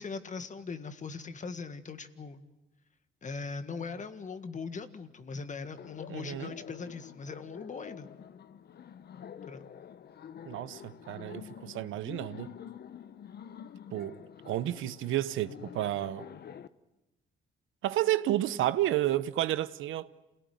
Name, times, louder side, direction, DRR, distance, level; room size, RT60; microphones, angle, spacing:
voice 1, 0.0-2.4 3.2-8.1 9.5-9.7, left 4 dB, 40° left, 1.8 m, -40 dB
Laughter, 5.8-16.7, left 8 dB, 55° left, 1.0 m, -47 dB
voice 2, 6.1-6.5 10.4-12.5 13.9-14.1 14.4-16.2 17.8-20.1, right 14 dB, 85° right, 1.0 m, -31 dB
28.0 x 17.5 x 9.5 m
cardioid pair, 90°, 20 cm